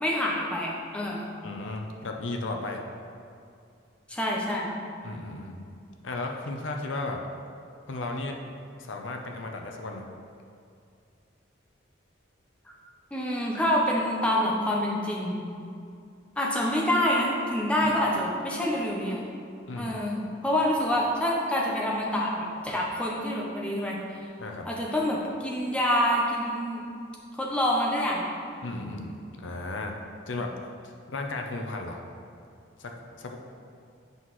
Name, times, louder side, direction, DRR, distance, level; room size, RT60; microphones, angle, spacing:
voice 1, 0.0-1.3 4.1-4.7 13.1-15.4 16.4-19.2 19.8-24.0 24.6-26.8 27.3-28.3, left 1 dB, 5° left, -3 dB, 0.7 m, -27 dB
voice 2, 1.4-2.8 5.0-5.6 6.0-7.2 7.9-8.4 8.8-10.1 19.7-20.0 24.4-24.7 28.6-29.9 30.3-30.5 31.1-32.0 32.8-33.4, left 2 dB, 80° left, 3 dB, 0.6 m, -34 dB
8.0 x 5.6 x 3.1 m, 2.4 s
head